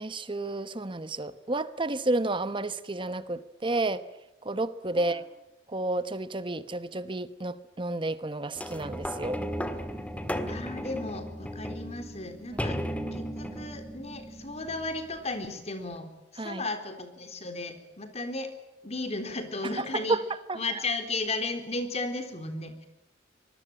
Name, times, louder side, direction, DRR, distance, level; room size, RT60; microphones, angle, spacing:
voice 1, 0.0-4.0 4.4-5.2 5.7-9.4 16.4-16.6 19.8-20.2 20.5-20.8, right 2 dB, 25° right, 13 dB, 1.0 m, -31 dB
sound 1, 8.6-15.3 16.0-16.1, equal, 5° left, 1.7 m, -35 dB
voice 2, 10.5-12.8 13.1-18.6 18.8-20.2 20.5-22.9, left 2 dB, 35° left, 8 dB, 3.7 m, -35 dB
25.5 x 20.5 x 8.8 m, 0.92 s
head